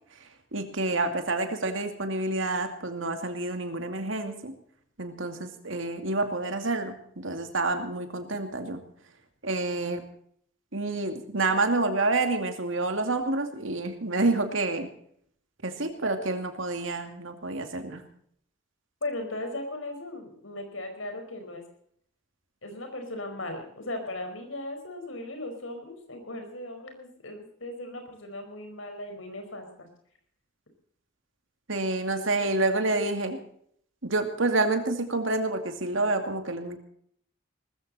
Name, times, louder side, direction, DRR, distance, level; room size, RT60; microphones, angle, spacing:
voice 1, 0.5-4.5 5.0-8.8 9.4-10.0 10.7-14.9 15.6-18.0 31.7-33.4 34.0-36.8, right 2 dB, 75° right, 6 dB, 2.5 m, -28 dB
voice 2, 19.0-21.6 22.6-29.9, left 2 dB, 75° left, 5 dB, 5.1 m, -37 dB
20.0 x 14.5 x 4.3 m, 0.65 s
head